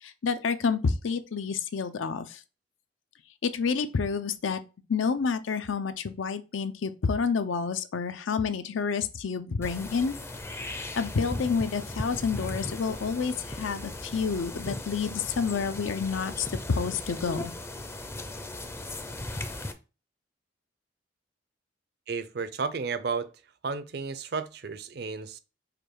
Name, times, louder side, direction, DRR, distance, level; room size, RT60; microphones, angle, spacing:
voice 1, 0.0-2.4 3.4-4.6 4.9-10.2 10.7-17.5, left 5 dB, 90° left, 0.5 m, -29 dB
sound 1, 9.6-19.7, left 1 dB, 15° left, 0.4 m, -37 dB
voice 2, 22.1-23.3 23.6-25.4, right 5 dB, 55° right, 0.5 m, -32 dB
5.1 x 2.3 x 4.6 m
head